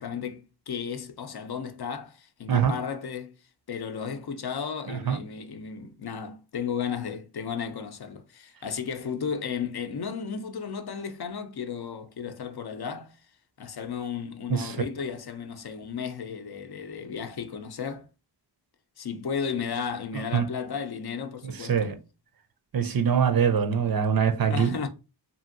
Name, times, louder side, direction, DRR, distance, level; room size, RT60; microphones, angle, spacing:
voice 1, 0.0-3.3 3.7-13.2 13.6-18.1 19.0-22.0 24.5-24.9, left 6 dB, 60° left, 0.5 m, -34 dB
voice 2, 4.9-5.2 14.5-14.8 20.1-20.4 21.6-21.9 22.7-24.9, right 7 dB, 55° right, 0.5 m, -24 dB
2.8 x 2.6 x 2.5 m
wide cardioid pair, 60°, 43 cm